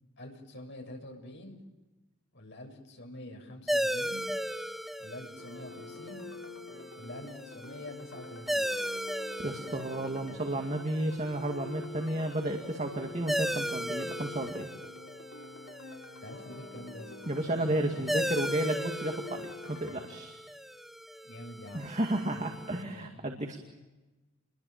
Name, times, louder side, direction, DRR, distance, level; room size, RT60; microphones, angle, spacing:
voice 1, 0.2-1.6 2.3-4.3 5.0-6.3 6.9-8.7 16.2-17.1 17.9-18.2 21.2-21.9 22.8-23.2, left 1 dB, 55° left, 3 dB, 6.7 m, -46 dB
sound 1, 3.7-22.8, equal, ahead, 1.1 m, -37 dB
sound 2, 5.4-20.2, left 3 dB, 80° left, 5.1 m, -47 dB
voice 2, 9.4-14.7 17.3-20.4 21.7-23.6, right 1 dB, 35° right, 3 dB, 2.3 m, -32 dB
29.5 x 22.5 x 7.4 m, 1.1 s
head